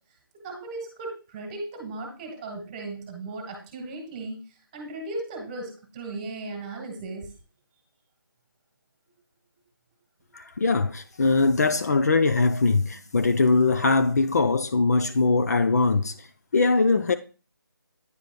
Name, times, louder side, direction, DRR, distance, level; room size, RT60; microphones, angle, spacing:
voice 1, 0.3-7.3, right 2 dB, 20° right, 1.5 m, -37 dB
voice 2, 10.3-16.3 16.5-17.1, left 3 dB, 45° left, 0.4 m, -21 dB
9.7 x 4.8 x 2.2 m
figure-of-eight pair, 160°, 12 cm